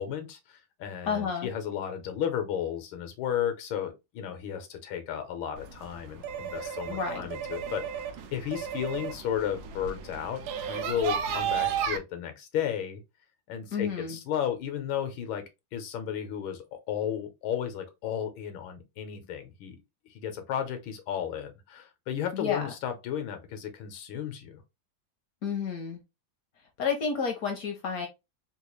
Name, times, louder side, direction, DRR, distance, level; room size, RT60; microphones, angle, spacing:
voice 1, 0.0-13.0 13.5-15.4 15.7-19.8 20.1-24.6, left 9 dB, 90° left, 1.6 m, -34 dB
voice 2, 1.1-1.5 6.9-7.3 13.7-14.2 22.3-22.7 25.4-26.0 26.8-28.1, left 6 dB, 65° left, 0.9 m, -30 dB
sound 1, 5.6-12.0, right 7 dB, 75° right, 0.9 m, -34 dB
3.7 x 2.3 x 3.0 m
omnidirectional pair, 2.1 m